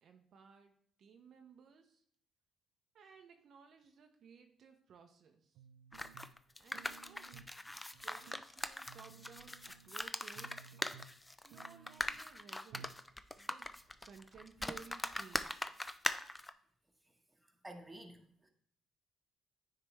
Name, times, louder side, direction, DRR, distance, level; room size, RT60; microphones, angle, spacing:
voice 1, 0.0-2.0 2.9-5.6 6.6-7.4 8.0-10.7 11.4-13.0 13.4-13.7 14.0-15.7, right 6 dB, 60° right, 0.7 m, -58 dB
sound 1, 5.6-6.4 6.7-7.6 7.9-8.4 8.9-10.0 10.4-11.2 11.5-12.2 12.7-13.1 13.3-13.4, right 7 dB, 85° right, 0.3 m, -57 dB
sound 2, 5.9-16.5, left 1 dB, 15° left, 0.4 m, -41 dB
voice 2, 17.6-18.5, right 1 dB, 15° right, 1.1 m, -51 dB
9.7 x 3.3 x 3.2 m
supercardioid pair, 75°, 0 cm